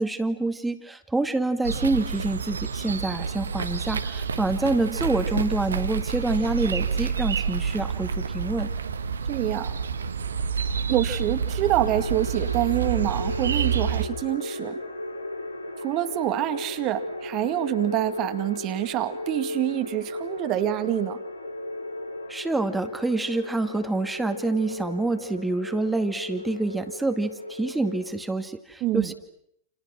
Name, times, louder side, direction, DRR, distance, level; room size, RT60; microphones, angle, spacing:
voice 1, 0.0-8.7 22.3-29.1, right 2 dB, 10° right, 8 dB, 2.2 m, -27 dB
sound 1, 1.6-14.1, right 6 dB, 70° right, 1.7 m, -28 dB
voice 2, 9.3-9.8 10.9-14.8 15.8-21.2 24.7-24.8 28.8-29.1, right 14 dB, 40° right, 9 dB, 2.2 m, -26 dB
sound 2, 11.6-28.1, left 1 dB, 85° left, 3.5 m, -36 dB
30.0 x 29.5 x 6.2 m, 0.74 s
figure-of-eight pair, 90°, 0 cm